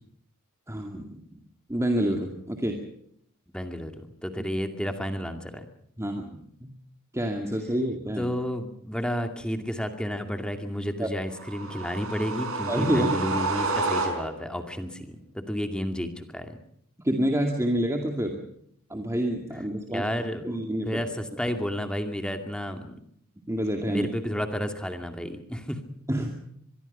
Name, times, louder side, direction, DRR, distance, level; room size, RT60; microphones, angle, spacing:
voice 1, 0.7-1.4 1.7-2.8 6.0-6.8 7.1-8.3 11.0-11.1 12.7-13.2 17.0-18.4 18.9-20.0 20.4-21.0 23.5-24.1 26.1-26.3, equal, 15° right, 3 dB, 2.2 m, -28 dB
voice 2, 3.5-5.7 8.2-16.6 19.9-23.0 23.9-25.8, equal, 5° left, 6 dB, 2.3 m, -31 dB
sound 1, 11.4-14.6, right 3 dB, 65° right, 5.6 m, -29 dB
25.0 x 22.0 x 5.6 m, 0.70 s
head